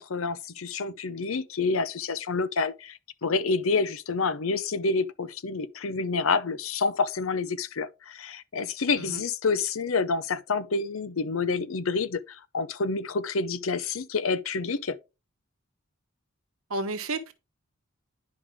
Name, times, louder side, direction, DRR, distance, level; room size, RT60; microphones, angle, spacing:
voice 1, 0.0-15.0, left 4 dB, 75° left, 0.7 m, -28 dB
voice 2, 16.7-17.3, right 2 dB, 90° right, 1.2 m, -31 dB
10.5 x 5.2 x 3.5 m
head